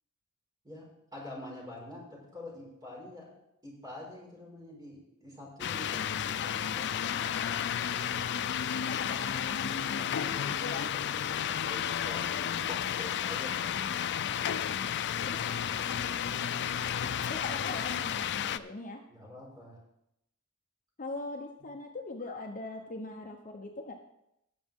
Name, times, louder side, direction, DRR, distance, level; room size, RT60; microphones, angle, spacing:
voice 1, 0.6-3.3 3.6-6.9 10.8-11.1 11.4-13.7 19.1-19.8, left 1 dB, 20° right, -4 dB, 5.3 m, -46 dB
sound 1, 5.6-18.6, left 9 dB, 50° left, 0.4 m, -32 dB
voice 2, 7.1-10.9 13.9-14.0 15.2-15.4 15.9-19.0 21.0-23.9, left 2 dB, 35° left, 3 dB, 0.9 m, -42 dB
18.5 x 7.2 x 3.7 m, 0.82 s
head